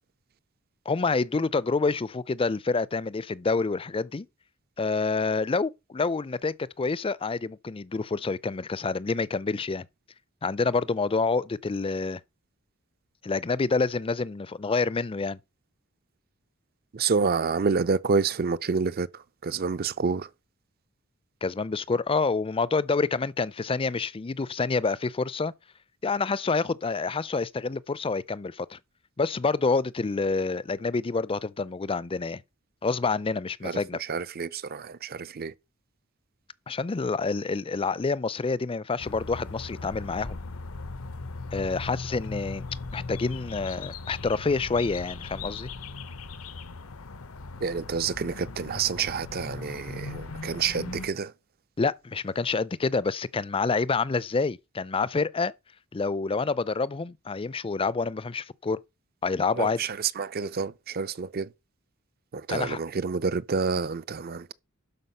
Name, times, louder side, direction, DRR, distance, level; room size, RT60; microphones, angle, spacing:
voice 1, 0.9-4.3 4.8-9.9 10.4-12.2 13.2-15.4 21.4-25.5 26.0-28.8 29.2-32.4 32.8-34.0 36.7-40.4 41.5-42.6 42.9-45.7 51.8-55.5 55.9-58.8 59.2-59.8 62.5-62.8, left 4 dB, 25° left, 0.5 m, -27 dB
voice 2, 16.9-20.3 33.6-35.5 47.6-51.3 59.5-61.5 62.3-64.5, right 5 dB, 45° right, 0.5 m, -28 dB
sound 1, 39.0-51.1, left 3 dB, 80° left, 0.9 m, -39 dB
12.0 x 5.0 x 5.5 m
head